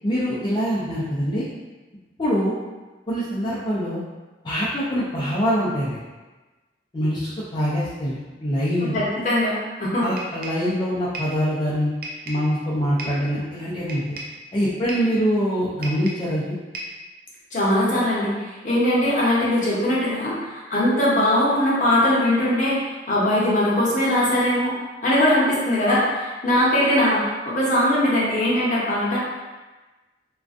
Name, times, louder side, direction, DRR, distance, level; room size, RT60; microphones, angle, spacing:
voice 1, 0.0-1.4 2.2-2.5 3.1-4.0 4.4-6.0 6.9-9.0 10.0-11.9 12.3-14.2 14.5-16.6, equal, 25° left, -10 dB, 0.4 m, -24 dB
voice 2, 8.9-9.5 9.8-10.1 17.5-18.3 18.6-22.8 23.1-24.7 25.0-29.2, left 1 dB, 45° left, -7 dB, 0.7 m, -20 dB
sound 1, 10.2-10.7 11.1-11.4 12.0-12.5 13.0-13.3 13.9-14.4 14.9-15.2 15.8-16.3 16.7-17.0, right 1 dB, 55° right, 0.4 m, -35 dB
2.4 x 2.2 x 2.4 m, 1.2 s
head